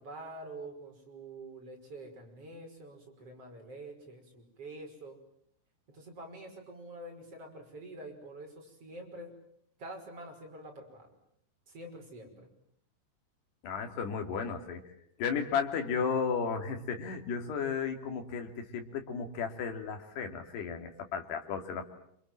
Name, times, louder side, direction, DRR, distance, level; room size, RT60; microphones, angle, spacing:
voice 1, 0.0-5.2 5.9-9.3 9.8-11.1 11.7-12.5, right 1 dB, 35° right, 2 dB, 6.4 m, -46 dB
voice 2, 13.6-14.9 15.2-21.9, left 6 dB, 65° left, 4 dB, 4.9 m, -34 dB
28.0 x 28.0 x 7.6 m, 0.69 s
omnidirectional pair, 5.1 m